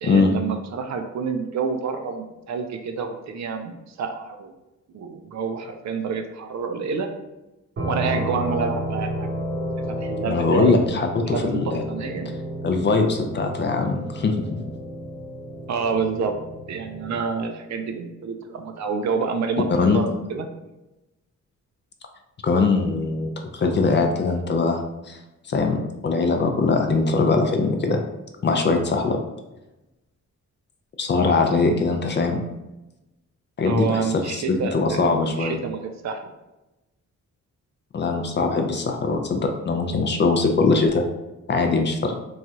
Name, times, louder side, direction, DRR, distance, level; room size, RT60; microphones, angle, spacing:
voice 1, 0.0-4.5 4.9-7.1 7.9-9.3 10.0-10.8 11.3-12.3 15.7-16.3 16.7-19.7 19.9-20.5 33.6-36.2, right 5 dB, 65° right, 6 dB, 0.5 m, -28 dB
sound 1, 7.8-17.3, right 1 dB, 40° right, 0.7 m, -31 dB
voice 2, 10.3-11.8 12.6-14.6 19.8-20.0 22.4-24.8 25.1-25.2 25.5-25.8 26.0-28.1 28.4-29.2 31.0-32.4 33.6-35.6 37.9-41.1 41.5-42.2, left 4 dB, 35° left, 4 dB, 0.4 m, -21 dB
3.1 x 2.3 x 2.7 m, 0.99 s
cardioid pair, 100°, 31 cm